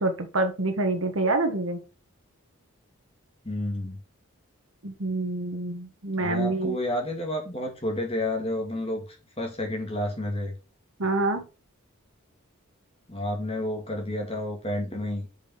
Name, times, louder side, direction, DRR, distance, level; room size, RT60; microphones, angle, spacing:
voice 1, 0.0-1.8 4.8-6.8 11.0-11.4, right 2 dB, 65° right, 1.5 m, -26 dB
voice 2, 3.4-4.0 6.2-10.5 13.1-15.3, left 1 dB, 25° left, 2.3 m, -30 dB
6.9 x 5.2 x 5.6 m
head